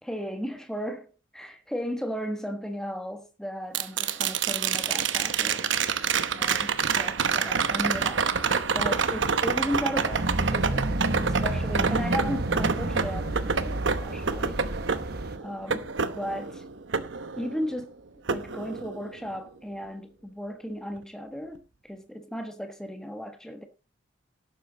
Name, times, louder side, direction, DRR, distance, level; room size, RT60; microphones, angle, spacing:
voice 1, 0.0-1.1 1.3-5.7 6.3-8.3 8.7-14.6 15.4-15.9 16.1-16.6 17.4-18.0 18.3-23.7, equal, 5° left, 1.3 m, -35 dB
sound 1, 3.7-17.8 18.3-19.3 21.6-21.7, right 6 dB, 75° right, 0.9 m, -28 dB
sound 2, 10.1-15.4, right 1 dB, 50° right, 1.1 m, -30 dB
12.0 x 8.9 x 4.0 m
head